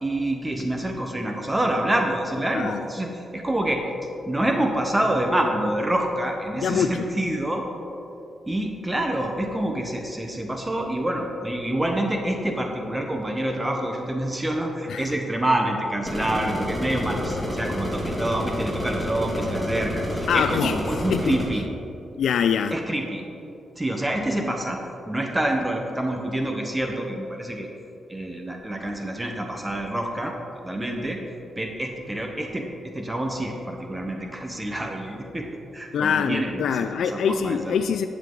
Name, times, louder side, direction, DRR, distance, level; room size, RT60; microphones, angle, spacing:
voice 1, 0.0-3.8 4.3-7.7 8.5-21.6 22.7-23.2 23.8-24.8 25.1-27.7 28.1-30.3 30.6-31.2 31.6-37.8, right 1 dB, 15° right, 2 dB, 1.0 m, -27 dB
voice 2, 2.5-2.8 6.6-7.1 14.9-15.1 20.3-20.8 21.1-21.3 22.2-22.8 35.9-38.1, left 7 dB, 80° left, 8 dB, 0.3 m, -24 dB
sound 1, 16.1-21.5, equal, 5° left, 2.0 m, -29 dB
11.0 x 7.5 x 3.8 m, 2.8 s
cardioid pair, 90°, 0 cm